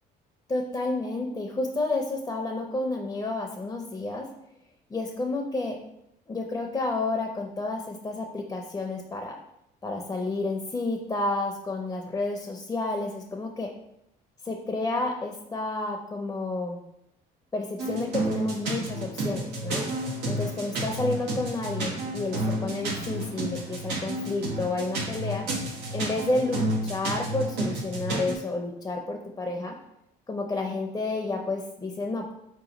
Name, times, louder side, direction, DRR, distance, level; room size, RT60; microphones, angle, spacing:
voice 1, 0.5-4.3 4.9-5.8 6.3-9.4 9.8-13.7 14.4-16.8 17.5-19.9 20.2-25.4 25.9-29.7 30.3-32.3, left 2 dB, 15° left, 2 dB, 0.5 m, -30 dB
sound 1, 17.8-28.3, right 1 dB, 90° right, 1.0 m, -31 dB
4.7 x 3.0 x 3.8 m, 0.80 s
cardioid pair, 110°, 17 cm